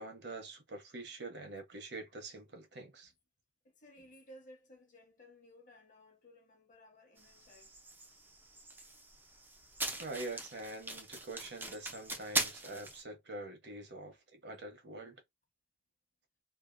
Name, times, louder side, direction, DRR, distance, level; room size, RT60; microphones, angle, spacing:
voice 1, 0.0-3.1 10.0-15.2, right 2 dB, 65° right, 0.9 m, -45 dB
voice 2, 3.6-7.7 8.3-8.9, left 1 dB, 45° left, 0.9 m, -59 dB
sound 1, 7.2-13.0, right 2 dB, 10° right, 0.4 m, -41 dB
2.8 x 2.4 x 2.5 m
head